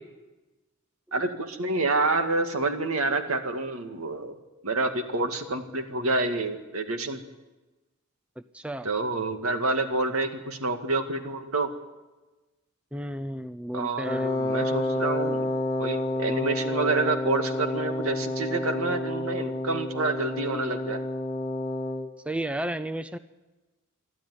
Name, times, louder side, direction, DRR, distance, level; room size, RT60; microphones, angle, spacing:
voice 1, 1.1-4.4 4.6-7.2 8.8-11.7 13.7-15.5 15.8-21.0, right 3 dB, 85° right, 7 dB, 2.1 m, -28 dB
voice 2, 8.5-8.9 12.9-14.3 22.3-23.2, right 1 dB, 5° right, 11 dB, 0.6 m, -32 dB
Wind instrument woodwind instrument, 14.1-22.1, left 1 dB, 20° left, 1.1 m, -29 dB
27.0 x 12.0 x 9.9 m, 1.2 s
head